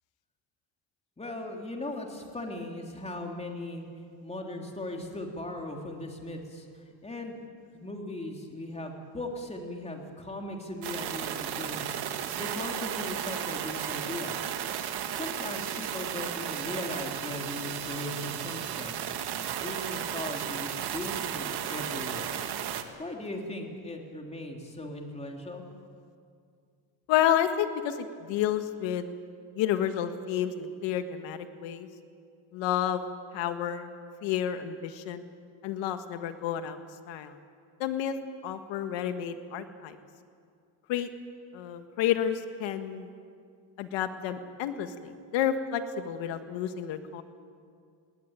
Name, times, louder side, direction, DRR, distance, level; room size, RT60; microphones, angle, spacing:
voice 1, 1.2-3.9 4.2-7.4 7.7-12.0 12.4-14.4 15.1-19.0 19.6-22.3 23.0-25.6, left 1 dB, 15° left, 1 dB, 3.5 m, -38 dB
sound 1, 10.8-22.8, right 9 dB, 60° right, 1.8 m, -34 dB
voice 2, 27.1-29.1 29.6-31.9 32.5-33.0 33.3-33.9 34.2-35.2 35.6-36.8 37.1-37.4 37.8-38.2 38.4-40.0 40.9-41.1 41.5-43.1 43.8-47.2, left 10 dB, 80° left, 8 dB, 1.8 m, -30 dB
20.0 x 18.5 x 9.1 m, 2.2 s
cardioid pair, 115°, 44 cm